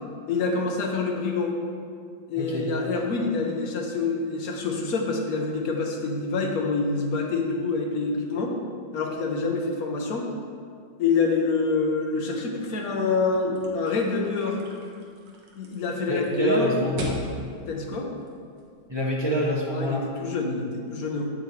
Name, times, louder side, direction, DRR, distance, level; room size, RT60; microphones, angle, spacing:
voice 1, 0.3-1.5 2.3-8.5 8.9-10.3 11.0-14.6 15.6-16.7 17.7-18.1 19.7-21.3, left 4 dB, 60° left, 1 dB, 1.2 m, -26 dB
voice 2, 2.4-2.7 16.1-17.2 18.9-20.1, equal, 30° right, -5 dB, 0.4 m, -26 dB
sound 1, 13.5-18.9, right 2 dB, 70° right, 1.7 m, -40 dB
8.3 x 7.8 x 3.2 m, 2.2 s
omnidirectional pair, 2.1 m